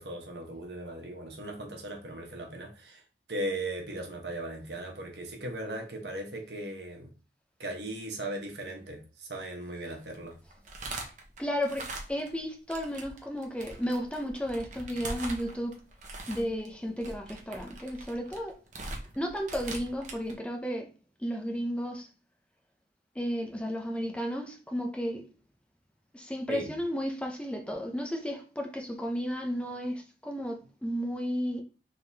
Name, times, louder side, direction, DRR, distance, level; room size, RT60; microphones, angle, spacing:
voice 1, 0.0-3.0 3.3-7.1 7.6-10.3 26.5-26.7, right 1 dB, 75° right, 1.2 m, -38 dB
sound 1, 10.0-12.4 12.7-20.3, right 2 dB, 45° right, 0.9 m, -42 dB
voice 2, 11.4-11.8 12.1-15.8 16.3-18.6 19.2-20.9 21.2-22.1 23.1-25.3 26.1-31.6, equal, 5° left, 0.6 m, -33 dB
5.2 x 3.6 x 2.8 m
head